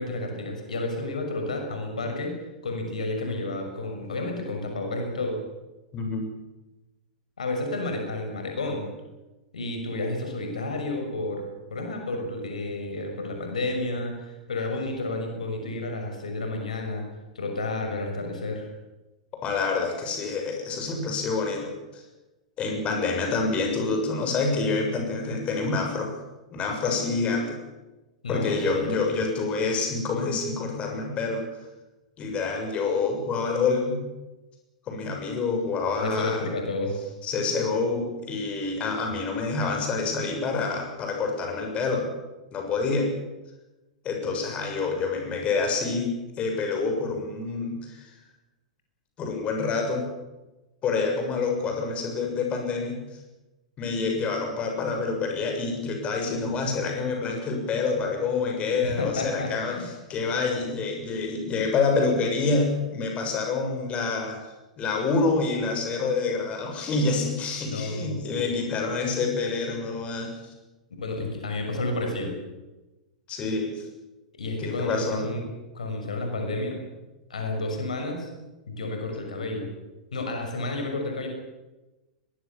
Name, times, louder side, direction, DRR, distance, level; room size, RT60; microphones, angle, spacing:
voice 1, 0.0-2.3 2.6-5.4 7.4-8.9 9.5-17.0 17.3-18.7 28.2-29.0 36.0-37.0 58.8-59.9 67.6-68.6 71.0-72.4 74.4-75.4 75.7-76.8 77.3-78.3 78.7-79.7 80.1-81.3, left 2 dB, 75° left, 3 dB, 6.1 m, -31 dB
voice 2, 5.9-6.3 19.4-22.0 22.6-26.1 26.5-27.6 28.3-31.4 32.2-34.0 34.9-36.4 37.2-42.1 42.5-43.1 44.0-48.1 49.2-50.1 50.8-53.0 53.8-59.8 60.1-70.4 73.3-73.9 74.6-75.3, left 4 dB, 30° left, 3 dB, 7.0 m, -27 dB
23.0 x 20.5 x 7.3 m, 1.1 s
figure-of-eight pair, 100°, 4 cm